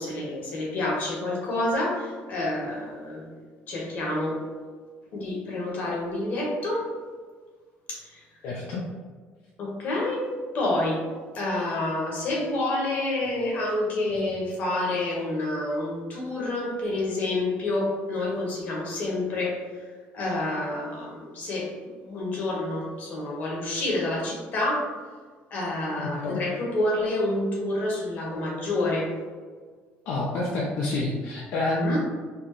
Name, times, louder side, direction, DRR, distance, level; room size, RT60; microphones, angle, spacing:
voice 1, 0.0-3.3 3.7-4.4 5.1-6.9 7.9-8.2 9.6-11.0 11.3-19.9 20.1-21.7 22.0-24.9 25.5-29.1 31.8-32.0, left 2 dB, 45° left, -3 dB, 1.2 m, -28 dB
voice 2, 8.4-8.8 26.0-26.4 30.1-32.0, left 2 dB, 70° left, -3 dB, 0.6 m, -28 dB
4.3 x 2.5 x 3.0 m, 1.5 s
cardioid pair, 160°, 4 cm